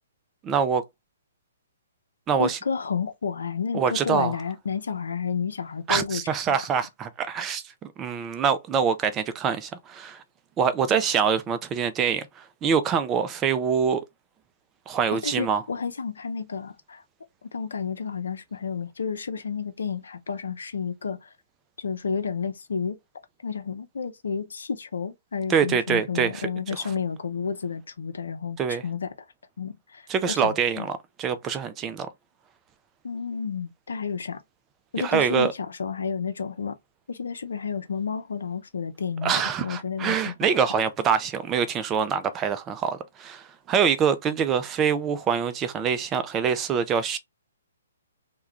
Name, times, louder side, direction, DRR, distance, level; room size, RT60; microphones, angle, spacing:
voice 1, 0.4-0.8 2.3-2.6 3.7-4.4 5.9-10.2 10.6-14.0 14.9-15.6 25.5-26.5 26.8-26.9 28.6-28.8 30.1-32.1 35.0-35.5 39.2-47.2, right 7 dB, 20° right, 0.4 m, -25 dB
voice 2, 2.4-6.2 6.5-6.6 15.2-17.0 17.5-21.3 21.8-23.0 23.4-29.1 29.6-30.9 33.0-34.4 34.9-36.8 37.1-39.3 39.6-40.3, left 6 dB, 70° left, 0.6 m, -31 dB
2.3 x 2.2 x 2.9 m
figure-of-eight pair, 130°, 0 cm